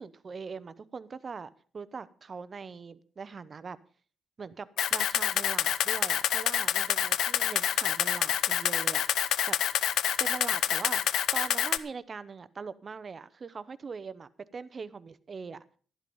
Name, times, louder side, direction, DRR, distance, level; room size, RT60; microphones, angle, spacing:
voice 1, 0.0-3.8 4.4-9.6 10.2-11.0 11.3-15.6, right 5 dB, 30° right, 16 dB, 0.6 m, -41 dB
Camera, 4.8-11.8, left 11 dB, 80° left, 0.7 m, -27 dB
12.5 x 11.5 x 5.3 m, 0.41 s
cardioid pair, 175°, 0 cm